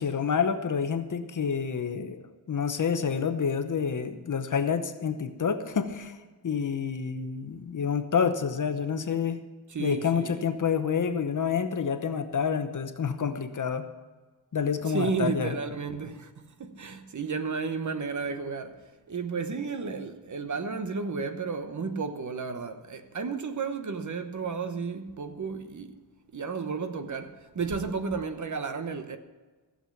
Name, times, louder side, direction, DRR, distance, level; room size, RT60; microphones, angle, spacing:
voice 1, 0.0-6.2 6.4-9.4 9.8-13.9 14.5-15.5, left 6 dB, 50° left, 0.9 m, -28 dB
voice 2, 9.7-10.4 14.9-16.3 16.6-18.8 19.1-26.0 26.3-29.2, right 5 dB, 45° right, 0.9 m, -32 dB
15.0 x 7.6 x 7.2 m
wide cardioid pair, 170°, 40 cm